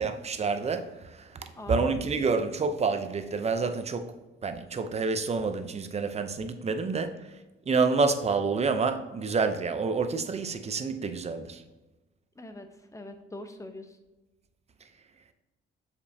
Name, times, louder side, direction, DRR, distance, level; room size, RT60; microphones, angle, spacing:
voice 1, 0.0-4.1 4.4-7.3 7.7-11.6, right 4 dB, 35° right, 0.6 m, -28 dB
voice 2, 1.6-2.1 12.4-14.0, left 2 dB, 15° left, 0.8 m, -43 dB
7.1 x 5.3 x 2.7 m
cardioid pair, 90°, 20 cm